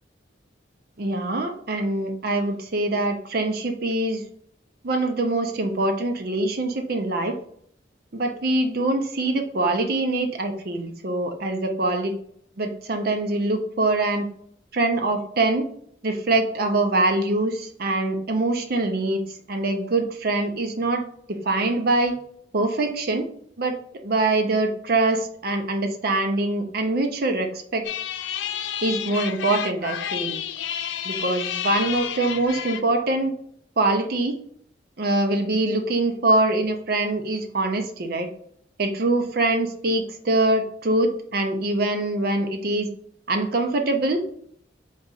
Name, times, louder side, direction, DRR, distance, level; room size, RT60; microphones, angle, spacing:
voice 1, 1.0-4.2 4.8-7.3 8.1-12.1 12.6-14.3 14.7-15.7 16.0-19.2 19.5-22.1 22.5-23.3 23.6-23.8 24.0-27.9 28.8-30.4 31.0-33.3 33.8-34.4 35.0-38.3 38.8-42.9 43.3-44.2, right 2 dB, 55° right, 5 dB, 0.7 m, -24 dB
sound 1, 27.8-32.8, left 9 dB, 80° left, 0.4 m, -30 dB
4.0 x 3.0 x 3.8 m, 0.64 s
head